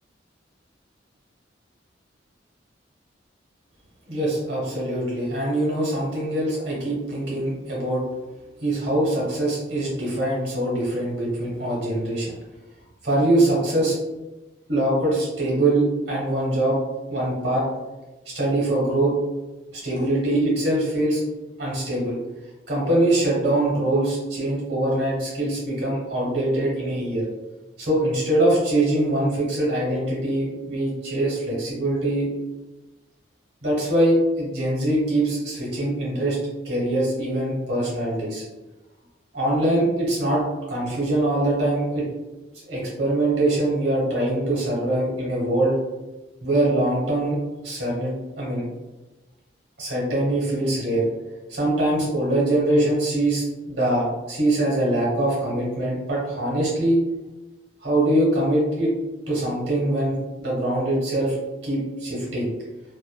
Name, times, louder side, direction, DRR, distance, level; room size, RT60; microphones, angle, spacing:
voice 1, 4.1-8.0 8.6-12.4 13.0-13.9 14.7-16.8 17.1-17.6 18.3-19.1 19.7-21.2 21.6-22.2 22.7-27.2 27.8-32.3 33.6-36.4 36.6-38.4 39.3-40.4 40.7-42.0 42.7-45.7 46.4-48.6 49.8-51.1 51.5-57.0 57.8-58.9 59.3-61.4 61.6-62.5, right 1 dB, 60° right, -4 dB, 1.1 m, -23 dB
2.5 x 2.4 x 2.3 m, 1.1 s
head